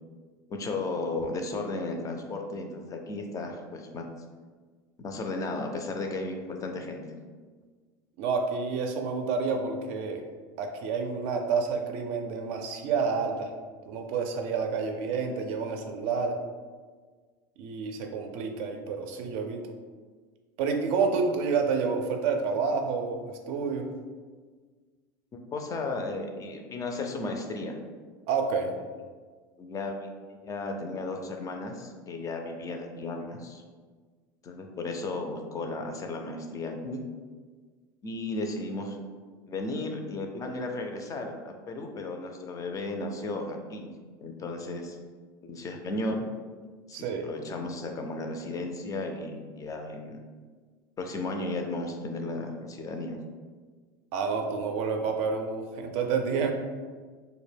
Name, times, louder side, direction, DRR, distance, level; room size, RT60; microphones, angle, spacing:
voice 1, 0.5-4.1 5.0-7.0 25.5-27.8 29.6-30.1 30.4-33.6 34.4-37.0 38.0-39.0 39.5-43.9 44.2-45.0 45.4-46.2 46.9-50.2 51.0-53.2, left 2 dB, 30° left, 3 dB, 0.4 m, -34 dB
voice 2, 8.2-10.2 10.6-13.5 13.9-16.4 17.6-19.7 20.6-23.9 28.3-28.7 46.9-47.3 54.1-56.5, right 5 dB, 65° right, 4 dB, 0.4 m, -29 dB
2.1 x 2.1 x 3.3 m, 1.5 s
hypercardioid pair, 95°, 12 cm